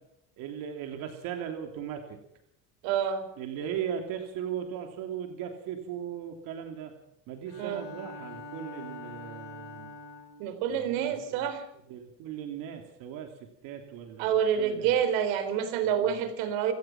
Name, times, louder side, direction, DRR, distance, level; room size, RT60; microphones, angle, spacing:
voice 1, 0.4-2.0 3.4-6.9 7.3-9.9 10.7-11.4 11.9-13.3 13.6-15.0 15.8-16.2, right 9 dB, 55° right, 4 dB, 3.1 m, -38 dB
voice 2, 2.8-3.3 7.6-7.8 10.4-11.6 14.2-16.7, right 8 dB, 85° right, 11 dB, 4.2 m, -27 dB
Bowed string instrument, 7.5-10.5, left 2 dB, 70° left, 7.4 m, -44 dB
29.0 x 17.0 x 6.0 m, 0.78 s
cardioid pair, 180°, 40 cm